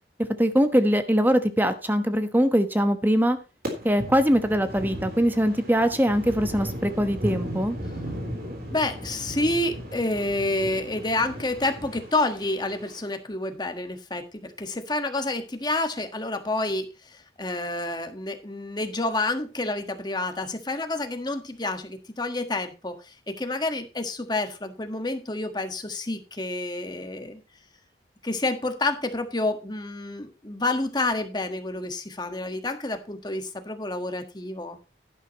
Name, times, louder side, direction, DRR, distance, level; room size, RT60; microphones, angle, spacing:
voice 1, 0.2-3.4 3.8-7.8, equal, 10° right, 9 dB, 1.1 m, -22 dB
sound 1, 3.6-13.0, equal, 55° right, 3.7 m, -36 dB
voice 2, 8.7-27.4 28.2-34.8, left 2 dB, 25° left, 7 dB, 1.4 m, -29 dB
11.5 x 10.5 x 3.0 m, 0.31 s
head